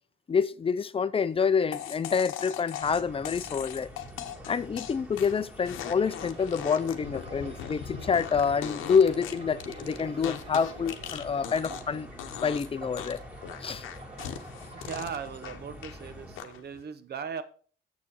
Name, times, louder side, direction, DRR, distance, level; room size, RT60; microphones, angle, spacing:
voice 1, 0.3-3.9 4.5-12.1 12.4-13.2 13.6-13.9, left 6 dB, 30° left, 0.5 m, -27 dB
sound 1, 1.7-11.9 12.2-12.7 13.0-16.0 16.4-16.8, left 10 dB, 90° left, 0.9 m, -40 dB
sound 2, 2.8-16.4, equal, 5° right, 2.0 m, -47 dB
sound 3, 5.7-12.2 12.6-15.0 15.7-15.9, right 1 dB, 35° right, 2.5 m, -47 dB
voice 2, 14.7-17.4, right 6 dB, 55° right, 1.0 m, -38 dB
7.3 x 6.7 x 4.7 m
cardioid pair, 90°, 20 cm